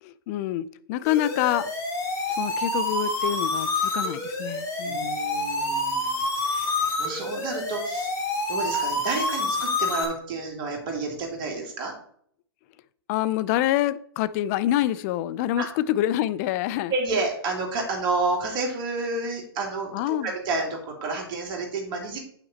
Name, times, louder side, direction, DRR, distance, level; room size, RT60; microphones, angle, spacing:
voice 1, 0.0-1.7 2.4-5.2 13.1-16.9 19.9-20.3, left 13 dB, 40° left, 0.5 m, -26 dB
sound 1, 1.0-10.0, left 2 dB, 25° left, 2.6 m, -28 dB
voice 2, 4.8-8.1 8.5-11.9 15.6-15.7 16.9-22.2, right 3 dB, 35° right, 2.8 m, -30 dB
9.0 x 5.9 x 4.2 m
hypercardioid pair, 130°, 13 cm